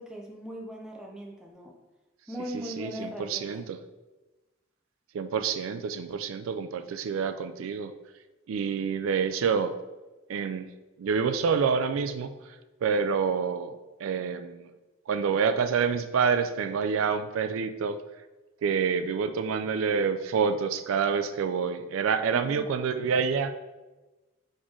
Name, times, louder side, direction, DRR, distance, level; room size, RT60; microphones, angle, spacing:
voice 1, 0.0-1.8 2.3-3.6 22.3-22.7, equal, 5° right, 0 dB, 0.4 m, -39 dB
voice 2, 2.8-3.8 5.1-7.9 8.5-9.7 10.3-10.7 11.0-12.3 12.8-13.7 14.0-14.7 15.1-18.0 18.6-23.5, right 6 dB, 85° right, 9 dB, 0.3 m, -27 dB
4.2 x 3.1 x 3.7 m, 1.1 s
head